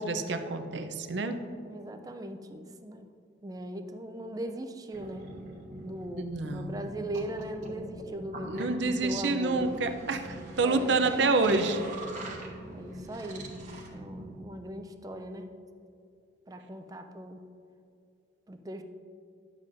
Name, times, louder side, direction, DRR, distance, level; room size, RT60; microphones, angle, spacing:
voice 1, 0.0-1.4 6.2-6.8 8.5-11.8, right 3 dB, 75° right, 8 dB, 0.6 m, -28 dB
voice 2, 1.6-3.1 3.4-5.3 5.8-9.6 10.6-11.0 12.7-13.5 13.9-15.6 16.5-17.5 18.5-18.8, right 1 dB, 20° right, 7 dB, 0.4 m, -39 dB
sound 1, 4.9-14.4, right 1 dB, 40° right, 1.2 m, -43 dB
10.5 x 7.3 x 2.6 m, 2.4 s
head